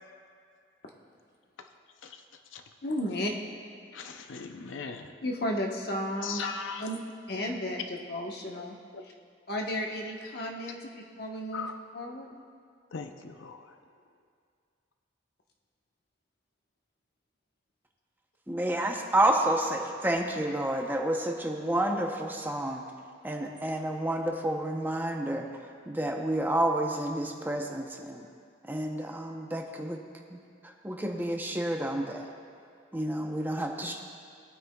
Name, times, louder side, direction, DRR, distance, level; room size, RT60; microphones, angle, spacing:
voice 1, 2.8-3.3 5.2-6.4 6.8-7.0 7.3-8.7 9.5-11.7 11.9-12.3 33.9-34.0, left 1 dB, 55° left, 0 dB, 1.1 m, -33 dB
voice 2, 3.9-5.2 6.2-6.9 8.9-9.0 11.5-11.7 12.9-13.8, left 5 dB, 90° left, 6 dB, 0.6 m, -39 dB
voice 3, 18.5-22.8 23.2-25.5 25.9-28.2 28.7-30.0 30.3-30.4 30.8-32.3 32.9-34.0, right 1 dB, 10° right, 1 dB, 0.7 m, -29 dB
19.0 x 9.2 x 2.3 m, 2.3 s
head